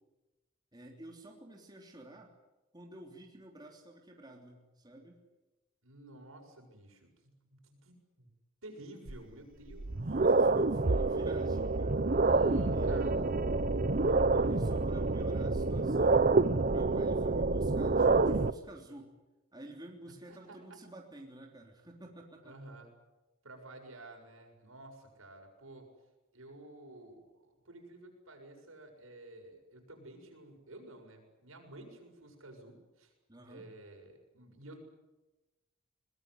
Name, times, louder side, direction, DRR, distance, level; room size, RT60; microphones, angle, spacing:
voice 1, 0.7-2.3 2.7-5.2 10.2-13.1 14.3-16.3 16.6-19.1 19.5-22.5 33.3-33.7, right 1 dB, 20° right, 1 dB, 3.4 m, -51 dB
voice 2, 5.8-8.3 8.6-10.2 12.0-14.3 20.3-20.8 22.4-22.9 23.4-25.9 26.3-33.1 33.5-34.8, right 1 dB, 80° right, 3 dB, 7.0 m, -52 dB
sound 1, 9.1-9.2 9.7-18.5, right 3 dB, 40° right, 0.8 m, -27 dB
22.5 x 21.0 x 9.8 m, 1.1 s
head